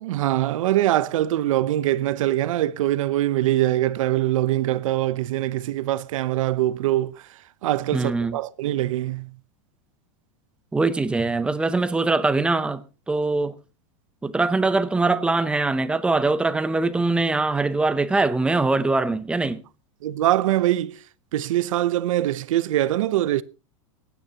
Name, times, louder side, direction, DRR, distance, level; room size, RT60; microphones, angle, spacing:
voice 1, 0.0-7.2 7.6-9.3 20.0-21.0 21.3-23.4, right 14 dB, 80° right, 0.7 m, -23 dB
voice 2, 7.9-8.4 10.7-13.6 14.2-19.6, right 3 dB, 5° right, 0.6 m, -22 dB
24.5 x 9.5 x 2.9 m
supercardioid pair, 155°, 17 cm